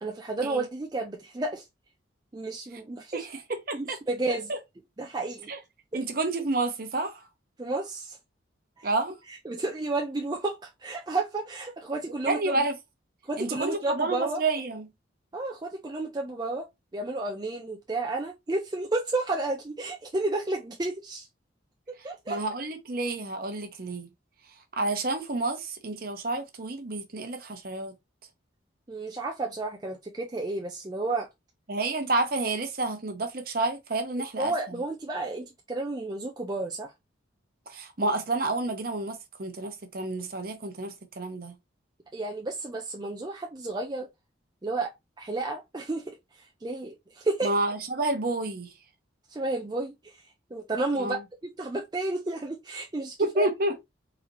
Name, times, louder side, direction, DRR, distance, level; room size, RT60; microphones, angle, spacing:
voice 1, 0.0-1.7 2.3-3.3 3.7-4.5 5.0-5.5 7.6-8.2 8.8-8.9 9.3-12.6 13.2-14.4 15.3-16.7 16.9-21.3 22.0-22.4 28.9-31.3 34.4-36.9 42.1-44.1 44.6-47.5 49.3-50.2 50.5-51.2 51.4-53.5, right 2 dB, 20° right, 0.4 m, -32 dB
voice 2, 3.1-4.0 4.5-4.6 5.5-5.6 5.9-7.2 8.8-9.2 12.3-12.7 13.4-14.9 22.3-24.1 24.7-27.9 31.7-34.5 37.7-41.5 47.4-48.7 51.0-51.2 53.2-53.8, right 2 dB, 50° right, 0.8 m, -29 dB
4.0 x 2.8 x 2.8 m
head